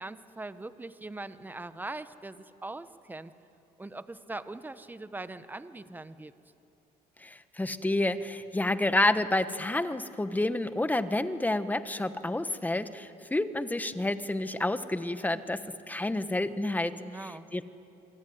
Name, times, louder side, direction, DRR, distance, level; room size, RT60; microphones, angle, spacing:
voice 1, 0.0-3.3 3.8-6.3 17.0-17.5, right 2 dB, 10° right, 12 dB, 1.0 m, -41 dB
voice 2, 7.2-17.6, left 2 dB, 10° left, 11 dB, 1.2 m, -29 dB
28.0 x 22.0 x 9.5 m, 2.8 s
cardioid pair, 110°, 17 cm